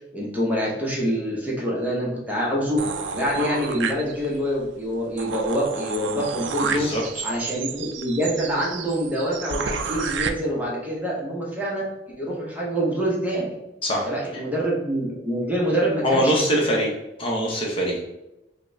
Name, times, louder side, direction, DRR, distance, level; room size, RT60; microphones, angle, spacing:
voice 1, 0.1-2.8 3.1-6.9 7.2-11.8 12.2-13.4 14.0-16.4, equal, 10° right, -5 dB, 0.7 m, -26 dB
sound 1, 2.8-4.5 4.9-5.0 5.2-10.3, right 5 dB, 75° right, 0.4 m, -31 dB
voice 2, 6.6-7.2 13.8-14.1 16.0-16.9 17.2-18.0, equal, 30° left, -2 dB, 0.8 m, -23 dB
5.1 x 2.1 x 2.6 m, 0.94 s
head